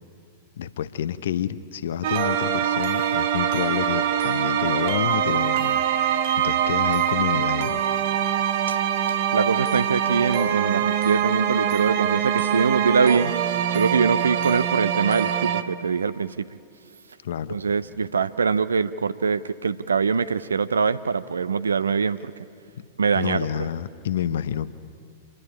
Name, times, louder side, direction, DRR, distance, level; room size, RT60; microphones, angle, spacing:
voice 1, 0.6-5.8 6.4-7.8 17.2-17.6 23.1-24.7, left 9 dB, 65° left, 13 dB, 0.7 m, -28 dB
sound 1, 2.0-15.6, right 9 dB, 55° right, 1.0 m, -24 dB
voice 2, 9.1-13.3 13.7-16.5 17.5-22.3 23.0-23.5, right 5 dB, 80° right, 14 dB, 0.5 m, -23 dB
27.5 x 11.0 x 10.0 m, 2.3 s
figure-of-eight pair, 100°, 0 cm